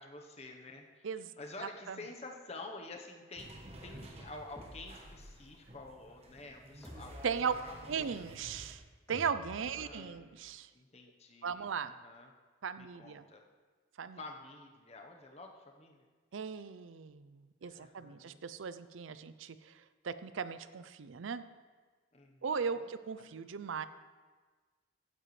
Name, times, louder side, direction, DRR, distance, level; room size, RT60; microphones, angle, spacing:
voice 1, 0.0-8.1 9.7-12.3 12.8-13.4 14.1-16.0 17.6-18.4 22.1-23.3, left 2 dB, 30° left, 3 dB, 1.0 m, -50 dB
voice 2, 1.6-2.0 7.2-7.5 7.9-8.8 9.1-10.7 11.4-11.9 12.6-13.2 14.0-14.2 16.3-19.7 20.0-21.4 22.4-23.9, right 6 dB, 80° right, 13 dB, 0.5 m, -37 dB
sound 1, 3.4-8.7, right 1 dB, 30° right, 1.1 m, -52 dB
sound 2, 4.5-5.6 6.8-8.1 9.1-10.3, equal, 10° left, 2.6 m, -52 dB
15.0 x 9.2 x 3.3 m, 1.4 s
head